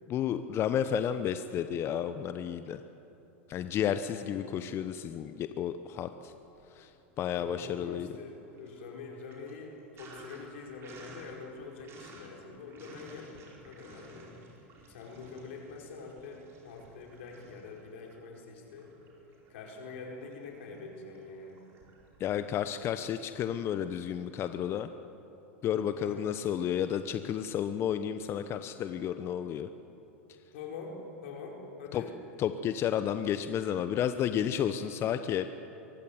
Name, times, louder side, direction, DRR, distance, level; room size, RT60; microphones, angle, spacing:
voice 1, 0.1-2.8 3.5-6.3 6.7-6.9 7.2-8.1 22.2-24.9 25.6-29.7 31.9-32.0 32.4-35.5, left 9 dB, 35° left, 10 dB, 0.9 m, -31 dB
voice 2, 4.2-4.6 7.3-14.3 14.8-18.9 19.5-21.6 25.9-26.3 30.5-32.1, left 4 dB, 65° left, 0 dB, 4.9 m, -45 dB
Sink (filling or washing), 6.1-7.0 7.4-23.5, right 2 dB, 35° right, 4.9 m, -55 dB
23.0 x 15.5 x 9.3 m, 2.9 s
hypercardioid pair, 90°, 7 cm